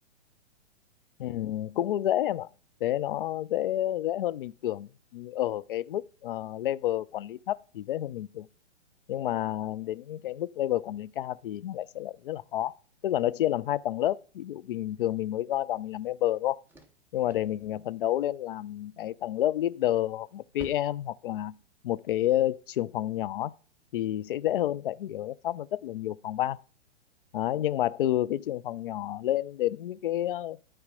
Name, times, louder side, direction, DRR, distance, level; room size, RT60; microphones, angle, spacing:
voice 1, 1.2-2.5 2.8-8.5 9.1-12.7 13.0-16.6 17.1-21.5 21.8-23.5 23.9-26.6 27.3-30.6, left 13 dB, 50° left, 0.5 m, -30 dB
sound 1, 15.0-22.2, right 2 dB, 5° right, 0.9 m, -56 dB
12.5 x 4.6 x 5.2 m
figure-of-eight pair, 115°, 34 cm